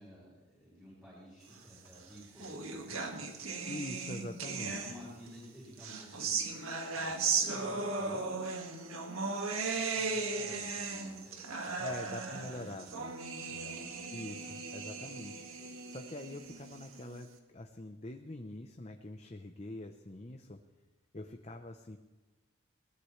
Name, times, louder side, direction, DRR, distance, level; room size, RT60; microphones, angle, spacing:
voice 1, 0.0-3.1 4.8-8.4 8.9-9.5 9.9-14.1, equal, 10° right, -9 dB, 7.6 m, -53 dB
sound 1, 1.9-5.3 5.8-17.2, right 4 dB, 90° right, 2.0 m, -37 dB
voice 2, 3.7-4.9 11.8-12.9 14.1-15.5 15.9-20.6 21.1-22.0, left 2 dB, 30° left, 5 dB, 0.8 m, -44 dB
21.5 x 19.5 x 3.3 m, 1.2 s
head